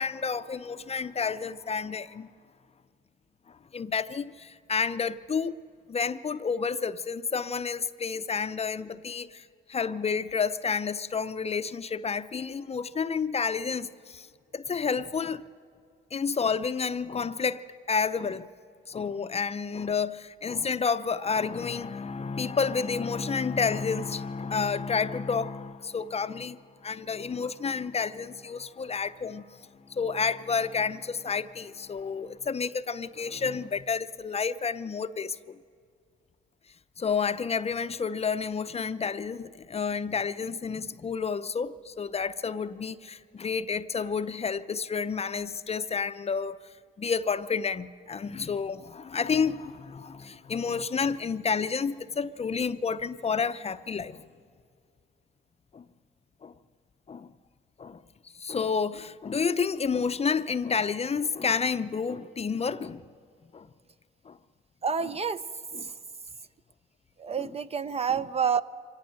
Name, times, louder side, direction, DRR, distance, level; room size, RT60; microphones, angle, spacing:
voice 1, 0.0-2.3 3.7-5.5 5.9-9.4 9.7-14.3 14.5-15.4 16.1-17.6 17.9-18.5 18.9-26.6 26.8-29.5 29.9-35.4 37.0-46.6 47.0-54.2 55.7-55.8 56.4-56.5 57.1-57.3 57.8-58.0 58.4-63.0 63.5-63.7 64.3-64.4 65.0-65.2 65.7-65.9 67.4-67.6 68.1-68.3, left 5 dB, 30° left, 0.6 m, -30 dB
voice 2, 64.8-65.4 67.2-68.6, right 6 dB, 30° right, 0.6 m, -28 dB
24.5 x 18.0 x 7.7 m
cardioid pair, 90°, 20 cm